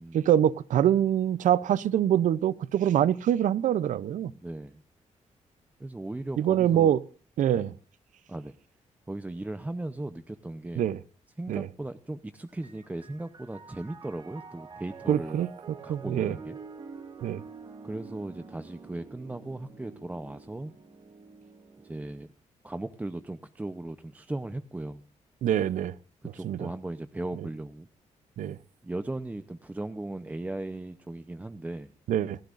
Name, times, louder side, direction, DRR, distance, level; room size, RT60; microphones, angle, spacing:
voice 1, 0.1-4.3 6.4-7.0 7.4-7.7 10.8-11.0 11.5-11.7 15.1-15.5 15.9-16.4 17.2-17.4 25.4-25.9 26.4-26.7 28.4-28.6 32.1-32.4, right 10 dB, 80° right, 0.5 m, -24 dB
voice 2, 4.4-4.8 5.8-6.9 7.5-7.6 8.3-8.5 9.1-10.9 11.4-15.4 15.8-16.6 17.8-20.7 21.8-22.3 22.6-25.0 26.3-27.9 28.8-31.9, right 2 dB, 10° right, 0.7 m, -37 dB
Piano, 12.5-22.1, right 5 dB, 35° right, 1.9 m, -47 dB
28.5 x 11.5 x 2.5 m
wide cardioid pair, 130°, 13 cm